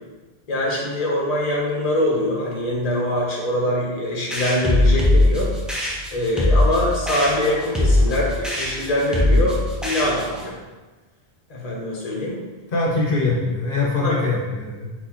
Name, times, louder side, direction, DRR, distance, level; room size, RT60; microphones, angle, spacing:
voice 1, 0.5-5.5 6.1-10.6 11.5-12.4 14.0-14.1, left 1 dB, 40° left, -3 dB, 1.0 m, -23 dB
sound 1, 4.3-10.5, left 1 dB, ahead, 0.6 m, -20 dB
voice 2, 12.7-14.9, left 3 dB, 60° left, -4 dB, 1.0 m, -22 dB
4.2 x 4.1 x 2.9 m, 1.2 s
omnidirectional pair, 1.0 m